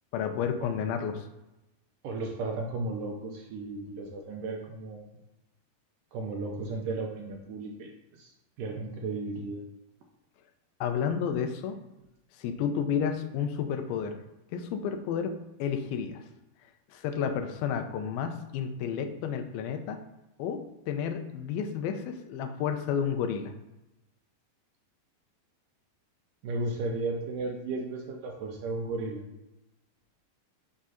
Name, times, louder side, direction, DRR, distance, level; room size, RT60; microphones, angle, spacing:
voice 1, 0.1-1.3 10.8-11.8 12.4-14.2 14.5-15.3 15.6-16.2 16.9-20.0 20.4-20.6 20.9-23.5, left 7 dB, 80° left, 7 dB, 2.4 m, -31 dB
voice 2, 2.0-5.0 6.1-8.3 8.6-9.6 26.4-29.2, right 3 dB, 80° right, 1 dB, 2.0 m, -34 dB
6.3 x 3.6 x 5.6 m, 0.95 s
omnidirectional pair, 4.3 m